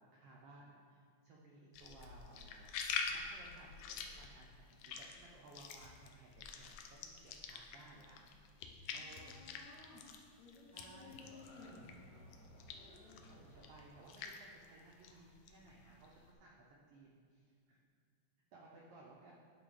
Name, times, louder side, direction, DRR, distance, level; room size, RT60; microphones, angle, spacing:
voice 1, 0.0-2.7 3.0-8.2 8.9-9.4 10.7-11.2 13.3-17.8 18.5-19.3, right 2 dB, 75° right, -3 dB, 1.4 m, -60 dB
sound 1, 1.7-12.0 12.3-16.3, left 5 dB, 90° left, 1.4 m, -46 dB
voice 2, 8.9-10.0 10.4-11.8 12.6-13.3, left 4 dB, 70° left, -7 dB, 2.2 m, -58 dB
Livestock farm animals working animals, 10.7-15.5, left 1 dB, 55° left, 2.9 m, -60 dB
9.1 x 3.2 x 4.9 m, 2.2 s
omnidirectional pair, 3.4 m